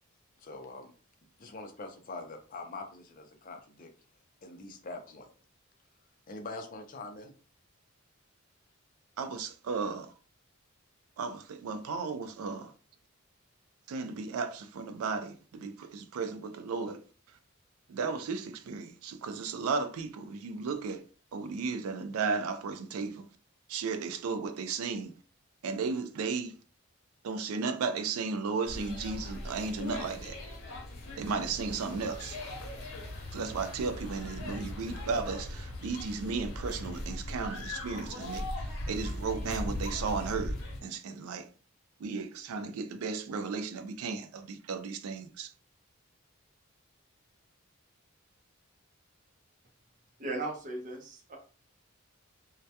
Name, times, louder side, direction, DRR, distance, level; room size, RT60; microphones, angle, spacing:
voice 1, 0.4-0.9 1.4-3.9 4.4-5.3 6.3-7.3, left 3 dB, 40° left, 0.4 m, -43 dB
voice 2, 9.2-10.1 11.2-12.7 13.9-17.0 17.9-23.2 23.7-25.1 25.6-26.5 27.2-30.4 31.2-32.4 33.3-41.5 42.0-45.5, right 4 dB, 90° right, 0.4 m, -35 dB
sound 1, 28.7-40.8, left 1 dB, 75° left, 0.8 m, -39 dB
voice 3, 50.2-51.4, right 2 dB, 35° right, 0.6 m, -37 dB
2.1 x 2.1 x 2.7 m
head